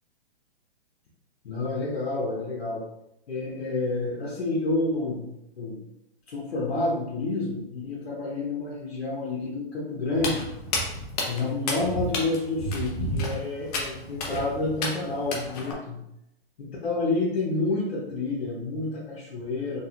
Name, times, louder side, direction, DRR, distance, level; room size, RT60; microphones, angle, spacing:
voice 1, 1.4-2.8 3.3-5.3 5.6-5.8 6.3-10.5 11.2-16.0 16.6-19.8, left 2 dB, 80° left, -6 dB, 1.1 m, -29 dB
Walk footsteps, 10.1-15.7, left 1 dB, 40° left, 0.8 m, -32 dB
3.9 x 2.5 x 2.4 m, 0.82 s
hypercardioid pair, 135°, 31 cm